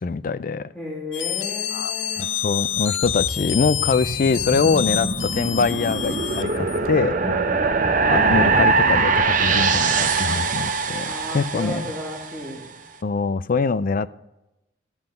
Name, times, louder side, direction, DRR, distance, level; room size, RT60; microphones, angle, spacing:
voice 1, 0.0-0.7 1.7-7.1 8.1-11.9 13.0-14.1, left 4 dB, 45° left, 15 dB, 0.4 m, -23 dB
voice 2, 0.7-2.4 7.1-9.0 11.0-12.7, equal, 5° left, -7 dB, 2.7 m, -34 dB
sound 1, 1.1-6.9, left 11 dB, 85° left, 0.7 m, -27 dB
sound 2, 3.0-12.4, right 4 dB, 45° right, 0.7 m, -23 dB
13.0 x 7.7 x 5.2 m, 0.96 s
head